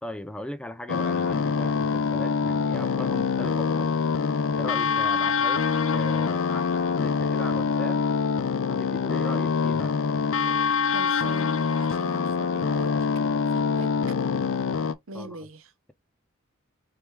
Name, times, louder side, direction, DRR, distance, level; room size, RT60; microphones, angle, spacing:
voice 1, 0.0-3.9 4.5-5.6 5.9-8.0 8.7-10.0 15.1-15.4, left 1 dB, 5° left, 0.3 m, -38 dB
sound 1, 0.9-14.9, left 5 dB, 80° left, 0.5 m, -25 dB
voice 2, 10.9-13.1 13.5-13.9 15.1-15.7, right 2 dB, 90° right, 0.8 m, -40 dB
3.4 x 3.3 x 3.2 m
head